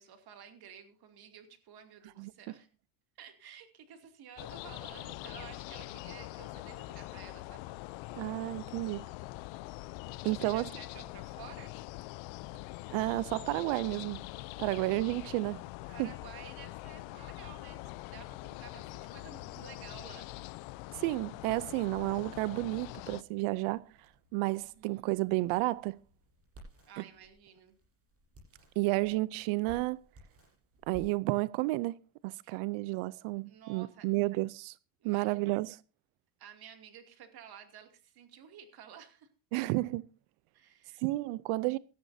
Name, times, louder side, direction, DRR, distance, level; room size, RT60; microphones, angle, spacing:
voice 1, 0.0-2.7 3.2-7.7 10.3-11.7 15.9-20.3 24.6-25.2 26.9-27.8 32.4-32.6 33.5-34.1 35.0-35.5 36.4-39.3 40.5-41.0, right 8 dB, 50° right, 2.6 m, -52 dB
sound 1, 4.4-23.2, left 19 dB, 65° left, 0.6 m, -44 dB
voice 2, 8.1-9.0 10.2-10.7 12.9-14.2 14.6-15.6 16.0-16.1 20.9-23.9 24.3-26.0 27.0-27.1 28.8-30.0 30.9-32.0 32.2-34.8 35.0-35.8 39.5-40.1 41.0-41.8, right 21 dB, 80° right, 0.7 m, -31 dB
sound 2, 14.3-33.9, right 1 dB, 25° right, 7.8 m, -61 dB
18.0 x 13.5 x 2.7 m
cardioid pair, 145°, 50 cm